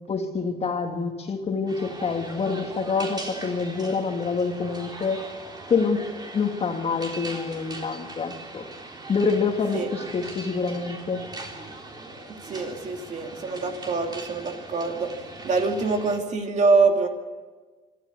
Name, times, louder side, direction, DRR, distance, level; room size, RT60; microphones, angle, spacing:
voice 1, 0.0-5.2 5.7-6.0 6.3-8.6 9.1-11.2, left 5 dB, 35° left, 4 dB, 2.4 m, -26 dB
sound 1, 1.7-16.2, right 2 dB, 25° right, 3.6 m, -40 dB
voice 2, 12.5-15.1 15.4-17.1, right 4 dB, 45° right, 4 dB, 2.6 m, -24 dB
25.0 x 13.5 x 8.4 m, 1.4 s
cardioid pair, 110°, 17 cm